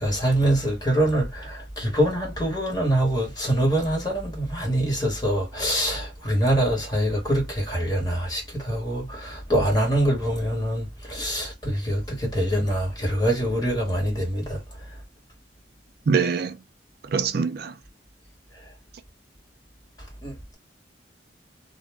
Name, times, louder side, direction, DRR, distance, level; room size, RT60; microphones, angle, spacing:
voice 1, 0.0-14.6 20.2-20.5, right 1 dB, 20° left, 1.3 m, -24 dB
voice 2, 16.1-16.6 17.1-17.7, right 5 dB, 60° right, 0.4 m, -23 dB
2.4 x 2.1 x 3.4 m
head